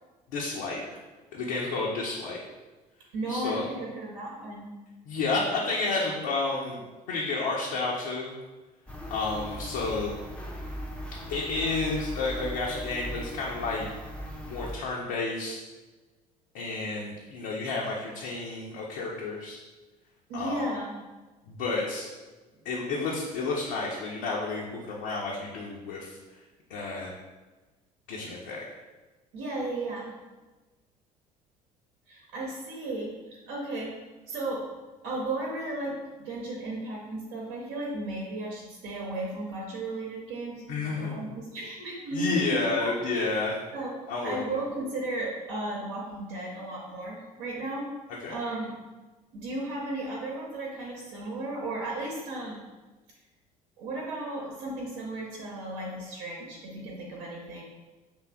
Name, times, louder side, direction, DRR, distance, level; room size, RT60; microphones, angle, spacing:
voice 1, 0.3-1.0 1.3-2.4 3.3-3.6 5.1-6.8 7.1-8.3 9.1-10.1 11.3-13.9 14.4-15.6 16.5-19.6 20.3-20.6 21.5-22.1 22.6-26.2 26.7-27.1 28.1-28.6 40.7-41.2 42.1-43.5 44.1-44.6 48.2-48.4, left 3 dB, 60° left, -4 dB, 0.7 m, -31 dB
voice 2, 3.1-4.7 20.3-20.9 29.3-30.1 32.1-34.0 34.3-34.7 35.0-42.9 43.7-47.9 48.3-48.7 49.3-52.6 53.8-57.6, right 2 dB, 60° right, -3 dB, 0.9 m, -35 dB
sound 1, 8.9-14.8, equal, 5° left, 0.6 m, -38 dB
6.0 x 3.2 x 2.3 m, 1.2 s
figure-of-eight pair, 55°, 20 cm